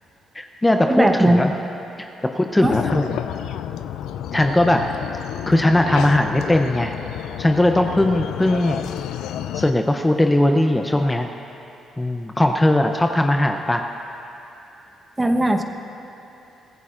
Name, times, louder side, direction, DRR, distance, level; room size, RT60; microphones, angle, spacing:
voice 1, 0.3-1.5 2.0-2.1 2.3-3.2 4.3-4.8 5.5-6.9 7.4-8.8 9.5-11.3 12.0-13.8, left 1 dB, 15° left, 4 dB, 0.7 m, -19 dB
voice 2, 0.9-1.5 2.6-2.7 15.2-15.6, right 1 dB, 15° right, 5 dB, 1.1 m, -18 dB
sound 1, 2.6-9.7, left 10 dB, 85° left, 0.4 m, -30 dB
24.0 x 15.5 x 2.5 m, 2.8 s
cardioid pair, 90°, 0 cm